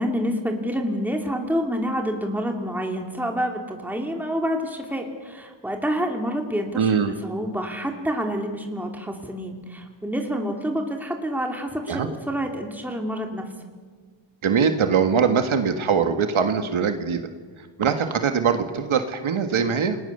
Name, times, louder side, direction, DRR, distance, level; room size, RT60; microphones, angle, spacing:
voice 1, 0.0-13.4, equal, 5° right, 2 dB, 2.8 m, -28 dB
voice 2, 6.8-7.2 11.9-12.1 14.4-17.2 17.6-20.0, right 6 dB, 70° right, 7 dB, 1.8 m, -22 dB
28.5 x 20.5 x 6.8 m, 1.5 s
wide cardioid pair, 105°, 50 cm